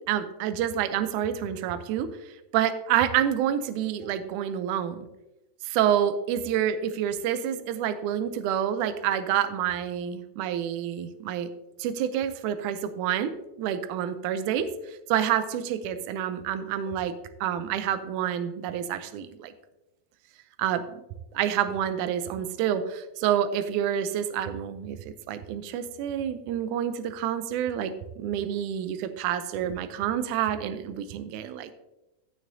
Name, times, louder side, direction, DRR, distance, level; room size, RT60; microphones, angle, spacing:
voice 1, 0.1-2.1 2.5-5.1 5.6-11.5 11.8-13.3 13.6-17.2 17.4-19.5 20.6-21.0 21.3-25.0 25.3-31.7, right 10 dB, 75° right, 11 dB, 2.0 m, -28 dB
15.5 x 6.4 x 2.7 m, 0.98 s
omnidirectional pair, 3.7 m